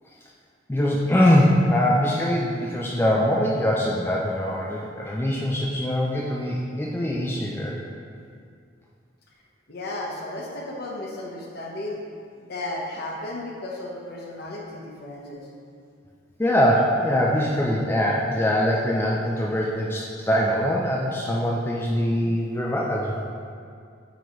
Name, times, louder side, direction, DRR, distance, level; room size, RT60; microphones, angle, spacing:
voice 1, 0.7-7.8 16.4-23.2, equal, 10° left, -3 dB, 0.4 m, -23 dB
voice 2, 9.7-12.0 12.5-15.5, left 1 dB, 55° left, -2 dB, 1.0 m, -34 dB
9.1 x 3.9 x 3.1 m, 2.3 s
head